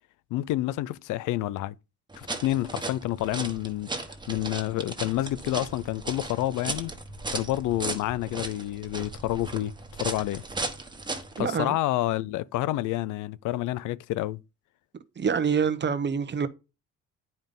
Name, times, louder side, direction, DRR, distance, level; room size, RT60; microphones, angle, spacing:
voice 1, 0.3-1.7 2.1-3.9 4.3-6.9 7.3-9.7 10.0-10.4 11.4-14.4, left 15 dB, 90° left, 0.5 m, -29 dB
sound 1, 2.1-11.4, right 2 dB, 15° right, 1.4 m, -36 dB
voice 2, 11.4-11.8 15.2-16.5, right 6 dB, 35° right, 0.9 m, -26 dB
9.5 x 5.3 x 3.7 m
cardioid pair, 90°, 30 cm